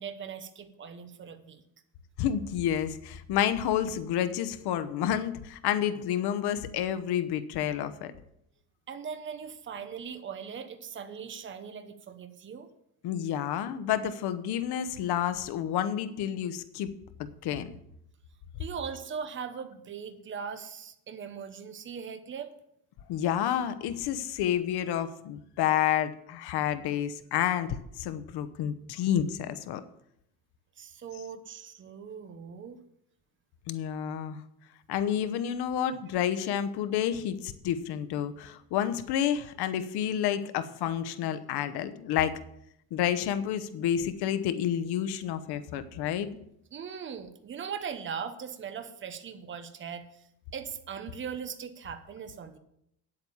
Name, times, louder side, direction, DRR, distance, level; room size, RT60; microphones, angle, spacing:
voice 1, 0.0-1.6 8.9-12.7 18.6-22.5 30.8-32.8 46.3-46.4 46.7-52.6, right 7 dB, 30° right, 9 dB, 1.0 m, -40 dB
voice 2, 2.2-8.1 13.0-16.9 17.4-17.7 23.1-29.8 33.7-34.4 34.9-42.4 42.9-46.3, left 10 dB, 85° left, 11 dB, 1.0 m, -29 dB
9.5 x 7.9 x 7.1 m, 0.75 s
cardioid pair, 155°, 38 cm